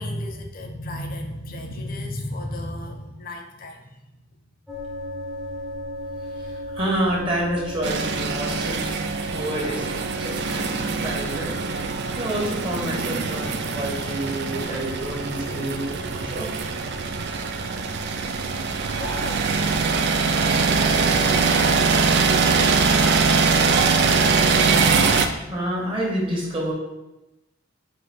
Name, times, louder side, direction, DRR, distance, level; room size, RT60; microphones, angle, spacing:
voice 1, 0.0-4.4 19.0-20.0 20.6-22.3, left 1 dB, 45° left, 3 dB, 0.5 m, -35 dB
sound 1, 4.7-22.0, equal, ahead, 0.8 m, -37 dB
voice 2, 6.3-9.0 9.3-11.5 11.8-16.6 25.0-26.7, right 1 dB, 25° right, -4 dB, 1.1 m, -29 dB
sound 2, 7.8-25.3, right 4 dB, 55° right, 0.4 m, -22 dB
4.7 x 2.6 x 4.2 m, 0.98 s
head